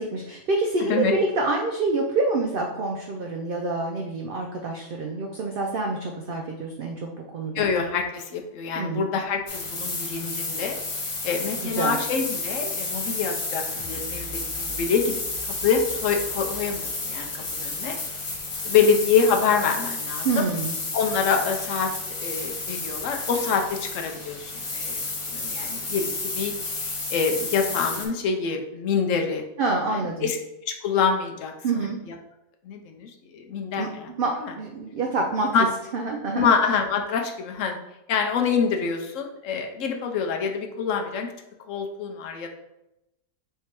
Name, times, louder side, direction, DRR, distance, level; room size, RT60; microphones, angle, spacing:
voice 1, 0.0-7.1 7.3-7.6 8.8-9.1 11.6-12.0 20.2-20.8 29.6-30.3 31.6-32.0 33.8-33.9 34.2-34.3 34.6-35.5 35.9-36.5, right 3 dB, 85° right, 1 dB, 0.4 m, -27 dB
voice 2, 0.8-1.2 7.5-10.8 11.2-15.2 15.6-18.0 18.6-20.4 20.9-21.9 22.2-25.0 25.3-29.4 29.9-30.4 30.7-32.2 32.6-34.1 34.4-34.5 35.5-35.7 36.3-37.8 38.1-41.3 41.7-42.5, left 6 dB, 70° left, 3 dB, 0.9 m, -26 dB
sound 1, 9.5-28.1, left 3 dB, 45° left, 0.4 m, -31 dB
sound 2, 13.7-18.6 19.1-19.2, right 1 dB, 10° right, 1.3 m, -46 dB
3.3 x 2.8 x 4.4 m, 0.89 s
omnidirectional pair, 1.5 m